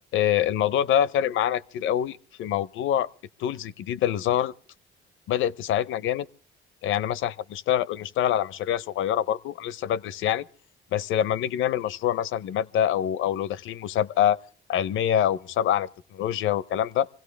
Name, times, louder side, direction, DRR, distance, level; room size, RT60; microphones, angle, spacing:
voice 1, 0.1-3.1 3.4-4.5 5.3-6.3 6.8-10.5 10.9-14.4 14.7-17.1, left 10 dB, 80° left, 0.7 m, -25 dB
25.5 x 16.5 x 3.3 m
cardioid pair, 90°, 20 cm